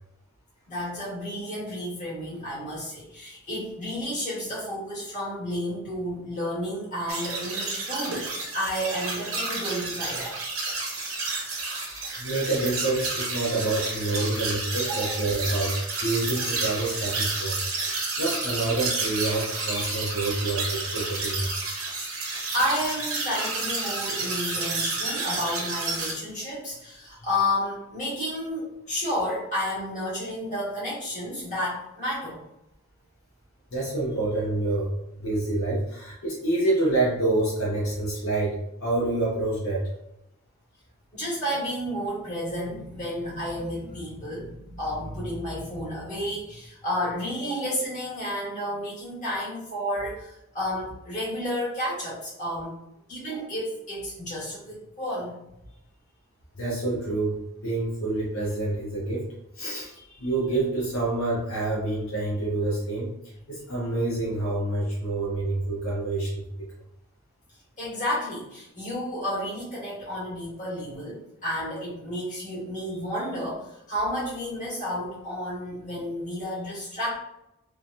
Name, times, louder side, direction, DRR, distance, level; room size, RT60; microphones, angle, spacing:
voice 1, 0.7-8.3 8.5-10.4 14.8-15.1 22.2-32.4 41.1-52.8 53.1-55.4 67.8-77.2, equal, 35° left, -8 dB, 1.5 m, -31 dB
sound 1, 7.1-26.1, right 3 dB, 65° right, 0.8 m, -30 dB
voice 2, 12.2-17.6 17.9-21.5 33.7-34.9 35.2-39.9 56.6-59.2 59.5-63.1 63.5-66.6, right 2 dB, 65° left, -5 dB, 0.8 m, -27 dB
3.1 x 2.2 x 2.6 m, 0.85 s
head